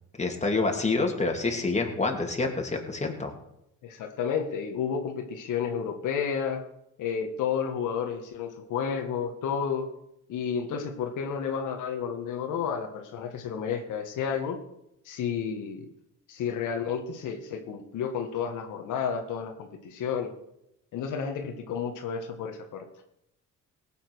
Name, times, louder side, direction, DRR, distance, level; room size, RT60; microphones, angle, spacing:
voice 1, 0.2-3.3, left 3 dB, 20° left, 2 dB, 2.8 m, -27 dB
voice 2, 3.8-6.6 7.0-9.9 10.3-14.6 15.0-15.9 16.3-20.3 20.9-22.8, left 7 dB, 85° left, 4 dB, 1.7 m, -31 dB
18.0 x 7.9 x 6.3 m, 0.81 s
cardioid pair, 90°, 30 cm